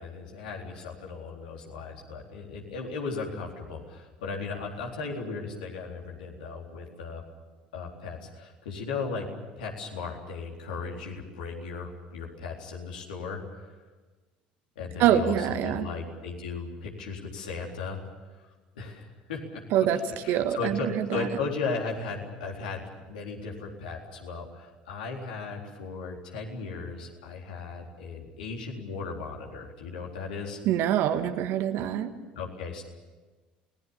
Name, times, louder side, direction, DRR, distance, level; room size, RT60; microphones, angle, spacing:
voice 1, 0.0-7.2 7.7-9.3 9.6-13.8 14.8-18.0 18.4-18.5 18.8-30.6 32.4-32.8, left 4 dB, 75° left, 0 dB, 3.9 m, -36 dB
voice 2, 15.0-15.9 19.7-20.0 20.3-21.3 30.6-32.1, right 10 dB, 55° right, 9 dB, 1.6 m, -25 dB
29.5 x 19.0 x 7.2 m, 1.3 s
figure-of-eight pair, 60°, 5 cm